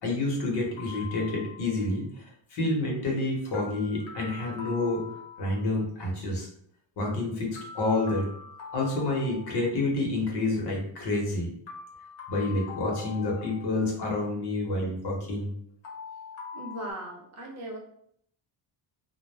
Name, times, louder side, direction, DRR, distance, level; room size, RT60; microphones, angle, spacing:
voice 1, 0.0-2.2 2.5-5.1 5.4-6.5 7.0-8.3 8.7-11.5 12.3-15.5, left 2 dB, 55° left, -2 dB, 1.0 m, -28 dB
sound 1, 0.8-1.9 3.5-5.8 7.5-9.9 11.7-14.0 15.8-16.9, left 5 dB, 80° left, 0.9 m, -43 dB
voice 2, 16.5-17.8, right 1 dB, 35° right, -1 dB, 0.7 m, -38 dB
2.3 x 2.1 x 3.2 m, 0.68 s
cardioid pair, 150°, 47 cm